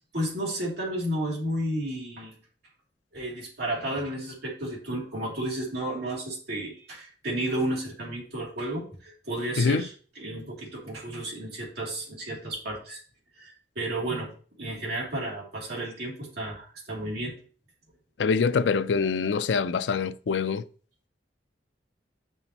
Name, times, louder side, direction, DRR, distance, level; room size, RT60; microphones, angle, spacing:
voice 1, 0.1-2.3 3.1-13.0 13.4-14.3 14.6-17.4, right 1 dB, 65° right, 2.9 m, -32 dB
voice 2, 18.2-20.6, left 5 dB, 75° left, 0.4 m, -24 dB
8.8 x 5.6 x 3.0 m
head